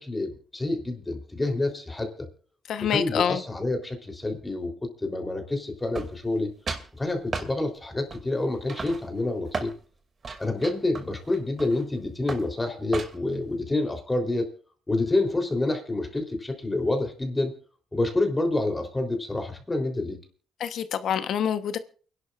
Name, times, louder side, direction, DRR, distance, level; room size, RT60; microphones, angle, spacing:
voice 1, 0.0-2.3 2.8-6.5 6.9-9.7 10.4-14.5 14.9-17.5 17.9-20.2, left 2 dB, 15° left, 3.5 m, -28 dB
voice 2, 2.7-3.4 20.6-21.8, left 8 dB, 70° left, 1.0 m, -26 dB
sound 1, 5.9-6.4 6.7-6.9 7.3-7.5 8.1-8.4 8.7-9.8 10.2-11.9 12.3-12.5 12.9-13.3, right 4 dB, 40° right, 2.5 m, -35 dB
29.0 x 11.5 x 2.5 m
cardioid pair, 90°, 0 cm